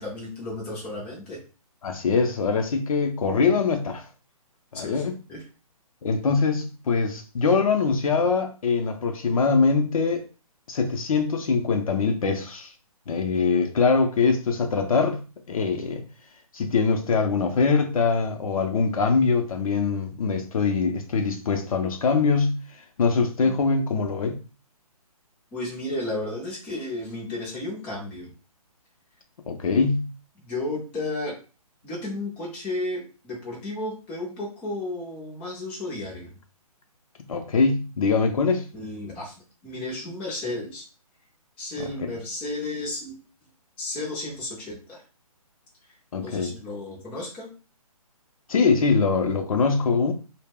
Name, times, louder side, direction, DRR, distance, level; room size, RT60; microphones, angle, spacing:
voice 1, 0.0-1.4 4.7-5.0 5.3-5.4 25.5-28.3 30.4-31.4 31.8-36.3 38.7-40.8 41.6-43.2 43.8-45.0 46.2-47.5, left 2 dB, 5° left, 0.4 m, -33 dB
voice 2, 1.8-4.1 4.7-5.2 6.0-10.2 10.7-12.7 13.1-15.2 15.5-16.0 16.5-22.6 23.0-24.4 29.5-30.1 37.3-38.6 41.8-42.1 46.1-46.5 48.5-50.1, left 4 dB, 65° left, 0.5 m, -23 dB
2.1 x 2.0 x 3.5 m
hypercardioid pair, 150°, 20 cm